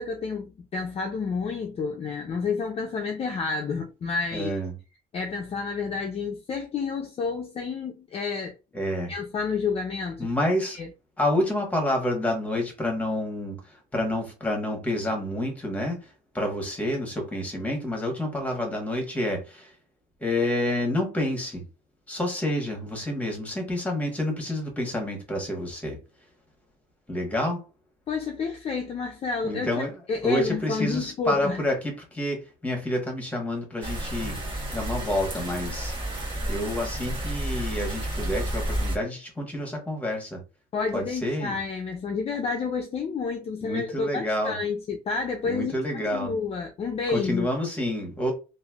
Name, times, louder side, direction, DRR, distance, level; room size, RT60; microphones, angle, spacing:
voice 1, 0.0-4.5 5.1-8.6 9.1-10.3 10.7-10.9 28.1-29.7 30.1-31.6 40.7-45.7 46.1-47.5, left 5 dB, 35° left, 0.4 m, -30 dB
voice 2, 4.3-4.7 8.7-9.1 10.2-10.8 11.2-19.7 20.2-21.7 22.1-26.0 27.1-27.6 29.4-34.4 34.7-35.9 36.5-40.4 40.9-41.6 43.6-44.6 45.4-46.3 47.1-48.3, left 1 dB, 10° left, 1.2 m, -28 dB
sound 1, 33.8-39.0, right 1 dB, 30° right, 1.1 m, -31 dB
3.1 x 2.5 x 2.3 m
cardioid pair, 110°, 17 cm